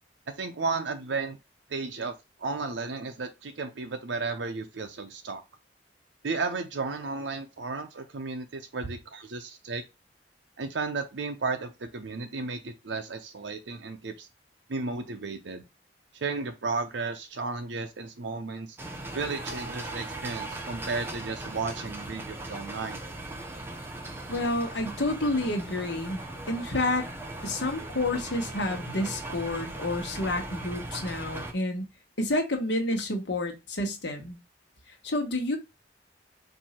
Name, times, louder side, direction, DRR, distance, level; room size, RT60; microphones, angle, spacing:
voice 1, 0.3-1.4 1.7-2.1 2.4-5.4 6.2-9.8 10.6-14.3 14.7-15.6 16.1-18.8 19.1-23.0, right 4 dB, 80° right, 0.6 m, -33 dB
sound 1, 18.8-31.5, right 2 dB, 15° right, 0.7 m, -38 dB
voice 2, 24.3-26.2 26.5-27.1 27.4-31.8 32.2-34.4 35.0-35.6, left 1 dB, 70° left, 1.3 m, -29 dB
4.6 x 2.7 x 4.2 m
head